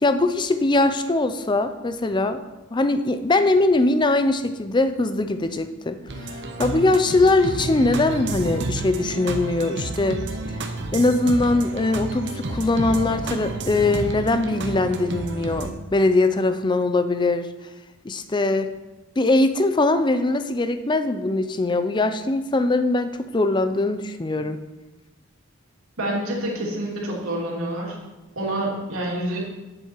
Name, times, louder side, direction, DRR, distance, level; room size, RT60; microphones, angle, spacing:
voice 1, 0.0-2.4 2.7-6.0 6.6-10.2 10.9-17.5 18.0-18.7 19.2-24.6, left 2 dB, 20° left, 10 dB, 0.5 m, -21 dB
sound 1, 6.1-15.7, right 2 dB, 55° right, 0.9 m, -31 dB
voice 2, 26.0-28.0 28.4-29.4, right 1 dB, 85° right, -3 dB, 2.7 m, -27 dB
10.0 x 7.7 x 4.4 m, 1.1 s
head